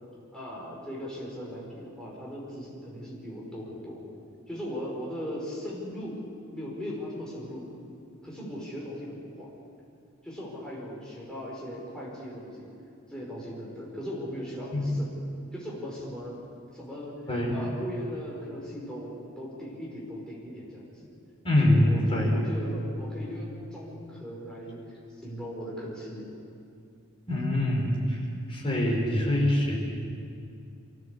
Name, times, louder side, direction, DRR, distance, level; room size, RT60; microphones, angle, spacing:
voice 1, 0.3-4.0 4.5-6.2 6.5-7.7 8.2-9.5 10.2-12.7 13.1-15.1 15.5-16.4 16.7-21.1 21.6-24.8 25.2-26.3, equal, 5° left, -5 dB, 5.2 m, -38 dB
voice 2, 17.3-17.6 21.4-22.4 27.3-28.2 28.5-29.8, left 1 dB, 25° left, -3 dB, 5.0 m, -24 dB
24.5 x 16.0 x 8.4 m, 2.4 s
head